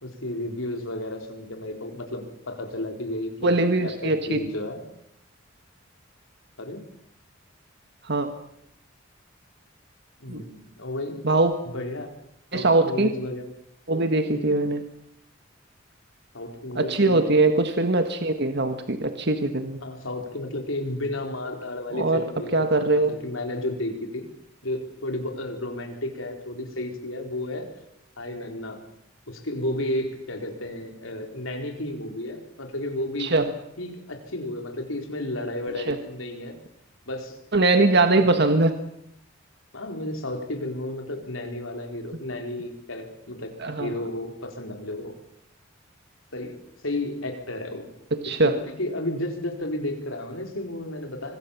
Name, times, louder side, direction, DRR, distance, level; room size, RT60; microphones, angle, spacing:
voice 1, 0.0-4.8 6.6-6.9 10.2-11.3 11.7-12.1 12.5-13.5 14.3-14.6 16.3-17.5 19.8-22.7 22.9-24.3 24.6-27.8 28.2-28.8 29.3-33.4 33.8-36.6 37.1-37.4 38.3-38.5 39.7-45.2 46.3-47.9 48.2-51.4, left 1 dB, 85° left, 4 dB, 4.4 m, -33 dB
voice 2, 3.4-4.4 8.0-8.3 10.3-10.4 11.2-11.5 12.5-13.1 13.9-14.8 16.8-19.8 21.9-23.2 33.2-33.5 35.9-36.0 37.5-38.7 43.6-43.9 48.1-48.6, right 2 dB, 55° right, 7 dB, 1.6 m, -22 dB
25.5 x 21.0 x 7.3 m, 0.77 s
head